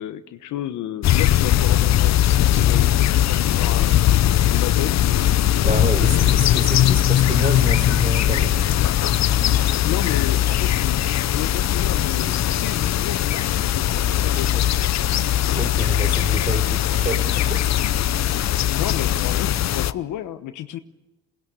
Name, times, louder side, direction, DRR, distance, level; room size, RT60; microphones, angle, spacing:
voice 1, 0.0-4.0 4.5-5.0 9.8-14.6 18.7-20.8, left 12 dB, 85° left, 10 dB, 1.1 m, -32 dB
sound 1, 1.0-19.9, left 12 dB, 60° left, 0.7 m, -19 dB
voice 2, 5.6-8.7 15.6-17.6, right 1 dB, 25° right, 7 dB, 4.2 m, -28 dB
22.0 x 19.0 x 9.6 m, 1.0 s
cardioid pair, 90°, 30 cm